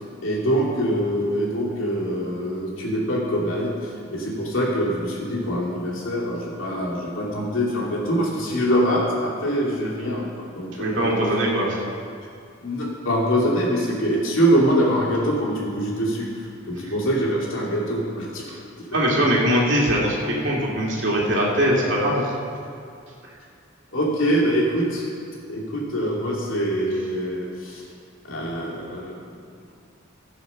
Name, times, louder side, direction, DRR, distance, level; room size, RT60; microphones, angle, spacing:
voice 1, 0.2-11.2 12.6-18.6 23.9-25.1 25.5-27.8 28.3-29.2, equal, 75° left, -5 dB, 2.7 m, -24 dB
voice 2, 10.8-11.8 16.8-16.9 18.9-22.3, equal, 60° right, -4 dB, 2.2 m, -21 dB
15.5 x 5.6 x 5.7 m, 2.4 s
head